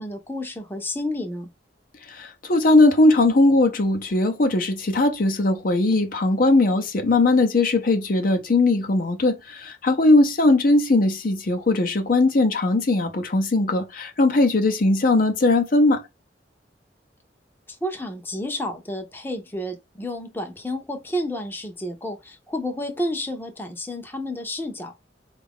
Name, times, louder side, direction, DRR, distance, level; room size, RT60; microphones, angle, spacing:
voice 1, 0.0-1.5 17.8-24.9, left 1 dB, 10° left, 0.6 m, -30 dB
voice 2, 2.1-16.0, left 2 dB, 50° left, 0.6 m, -19 dB
4.5 x 2.4 x 3.6 m
head